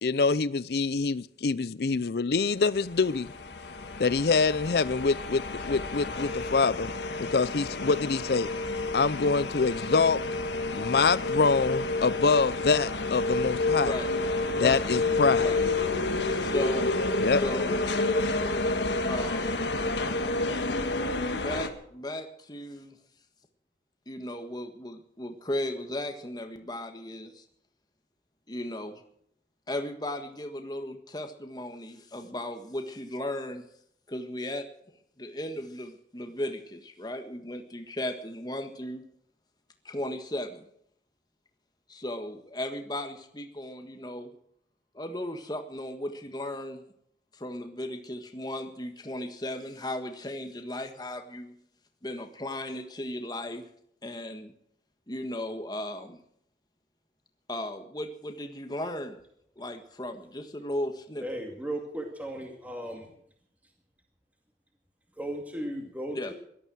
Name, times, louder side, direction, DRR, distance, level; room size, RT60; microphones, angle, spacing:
voice 1, 0.0-3.3 4.0-6.9 7.2-8.5 8.9-10.2 10.7-13.9 14.6-15.5 17.2-17.4, left 4 dB, 65° left, 19 dB, 0.6 m, -25 dB
sound 1, 2.8-21.7, left 2 dB, 85° left, 1.6 m, -29 dB
voice 2, 16.4-16.9 17.3-17.9 19.1-19.7 21.3-23.0 24.1-27.4 28.5-29.0 29.7-33.7 34.1-34.7 35.2-39.0 39.8-40.7 41.9-44.3 44.9-46.8 47.3-51.5 52.0-53.6 54.0-54.5 55.1-56.2 57.5-59.2 59.6-61.3 66.1-66.3, left 1 dB, 25° left, 6 dB, 1.5 m, -36 dB
voice 3, 61.2-63.1 65.2-66.3, right 1 dB, 10° right, 2 dB, 2.2 m, -36 dB
17.5 x 12.5 x 6.3 m, 0.68 s
head